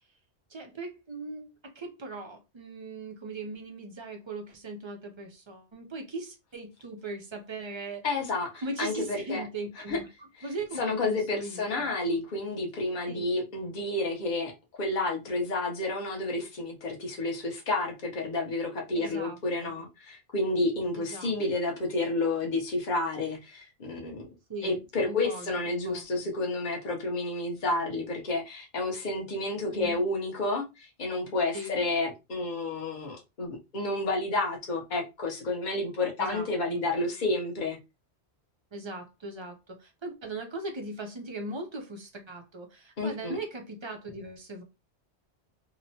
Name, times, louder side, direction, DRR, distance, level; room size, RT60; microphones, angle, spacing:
voice 1, 0.5-8.1 8.6-11.9 13.1-13.3 18.9-19.8 21.0-21.3 24.5-24.8 25.0-25.6 25.8-26.3 29.7-30.0 31.5-31.8 36.2-36.8 38.7-44.6, right 2 dB, 45° right, 0.4 m, -39 dB
voice 2, 8.0-9.4 9.9-10.0 10.8-14.5 14.8-24.3 24.6-37.8 43.0-43.4, left 2 dB, 45° left, 0.9 m, -30 dB
2.9 x 2.1 x 2.6 m
omnidirectional pair, 1.1 m